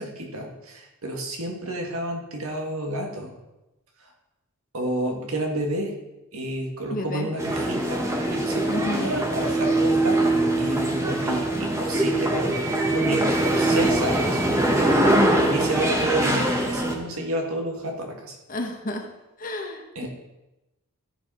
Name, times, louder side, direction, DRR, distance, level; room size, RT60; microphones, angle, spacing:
voice 1, 0.0-3.3 4.7-5.9 6.3-8.1 8.3-14.4 15.3-18.4 20.0-20.1, right 1 dB, 80° right, 1 dB, 1.8 m, -30 dB
voice 2, 6.9-7.3 8.7-9.1 18.5-19.0 19.4-20.1, left 1 dB, 40° left, 3 dB, 1.2 m, -31 dB
sound 1, 7.4-16.9, right 1 dB, 15° right, 1.2 m, -22 dB
14.0 x 5.0 x 4.9 m, 0.98 s
head